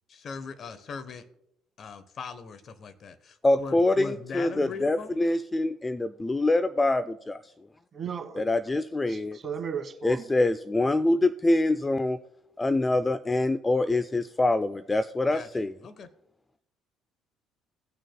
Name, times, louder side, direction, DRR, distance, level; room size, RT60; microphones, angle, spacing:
voice 1, 0.1-1.3 1.8-5.2 15.3-16.1, left 5 dB, 50° left, 12 dB, 0.9 m, -40 dB
voice 2, 3.4-7.4 8.4-9.4 10.0-12.2 12.6-15.7, left 2 dB, 20° left, 13 dB, 0.3 m, -25 dB
voice 3, 7.9-8.4 9.1-10.2, right 7 dB, 40° right, 6 dB, 1.3 m, -35 dB
18.5 x 6.3 x 2.2 m, 0.79 s
hypercardioid pair, 60°, 0 cm